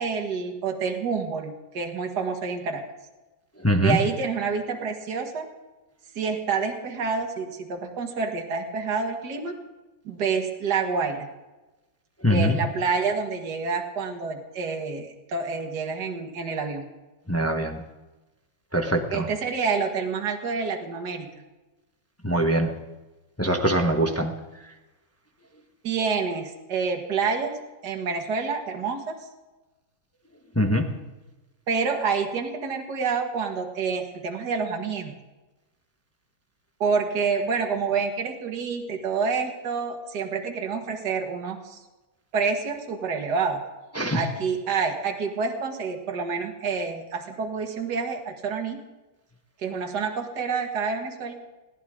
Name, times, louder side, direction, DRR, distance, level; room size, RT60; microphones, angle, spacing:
voice 1, 0.0-2.8 3.8-5.5 6.2-9.6 10.1-11.3 12.3-16.8 19.1-21.3 25.8-27.5 27.8-29.2 31.7-35.2 36.8-41.8 42.3-43.6 44.1-48.8 49.6-51.3, right 5 dB, 50° right, 2 dB, 2.2 m, -28 dB
voice 2, 3.6-4.0 12.2-12.6 17.3-17.8 18.7-19.2 22.2-22.7 23.4-24.3 30.6-30.8 44.0-44.2, equal, 10° left, 3 dB, 1.0 m, -22 dB
21.0 x 17.0 x 3.8 m, 1.1 s
omnidirectional pair, 2.3 m